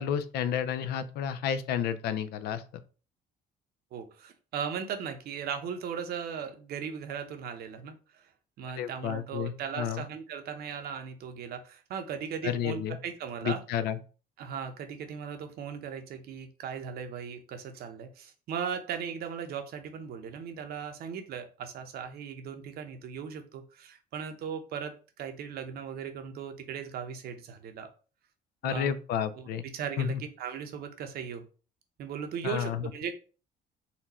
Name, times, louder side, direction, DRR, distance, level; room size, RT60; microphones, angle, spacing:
voice 1, 0.0-2.6 8.8-10.0 12.4-13.0 13.4-14.0 28.6-29.6 30.0-30.2 32.4-32.9, left 8 dB, 70° left, 12 dB, 0.5 m, -31 dB
voice 2, 3.9-8.2 8.6-13.6 14.4-27.9 28.6-28.9 29.4-29.5 29.7-31.5 32.0-33.1, right 7 dB, 65° right, 7 dB, 0.8 m, -38 dB
4.2 x 2.3 x 4.1 m, 0.36 s
cardioid pair, 110°, 17 cm